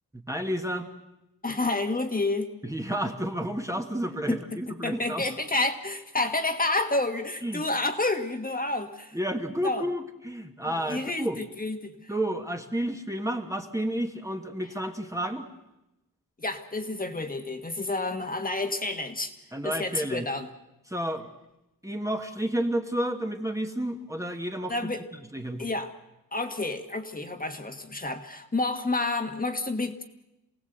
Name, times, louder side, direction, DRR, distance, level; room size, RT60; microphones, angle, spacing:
voice 1, 0.3-0.9 2.6-5.2 7.4-7.6 9.1-11.4 12.1-15.5 19.5-20.3 20.9-21.3 21.8-24.7 25.3-25.7, right 1 dB, 10° right, 4 dB, 1.4 m, -31 dB
voice 2, 1.4-2.5 4.3-9.2 9.6-9.8 10.7-12.1 16.4-19.3 19.6-20.5 24.7-25.1 25.6-25.9 26.3-30.0, left 2 dB, 25° left, 6 dB, 1.5 m, -29 dB
27.5 x 18.0 x 7.9 m, 0.94 s
wide cardioid pair, 155°, 35 cm